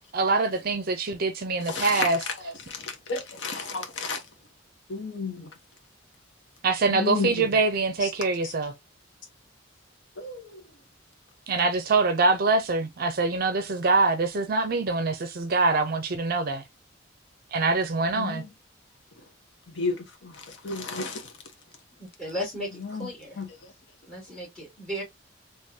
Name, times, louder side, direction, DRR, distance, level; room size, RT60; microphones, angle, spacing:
voice 1, 0.1-2.2 6.6-8.7 11.5-16.6 17.5-18.4, right 3 dB, 50° right, 0.5 m, -24 dB
voice 2, 1.7-2.1 2.7-4.2 4.9-5.5 6.9-7.5 8.0-8.1 10.2-10.6 18.2-18.5 19.7-21.3 22.8-23.1 23.4-23.5, left 4 dB, 65° left, 0.9 m, -32 dB
voice 3, 22.2-23.4 24.1-25.0, equal, 5° left, 2.1 m, -35 dB
3.7 x 3.0 x 2.7 m
head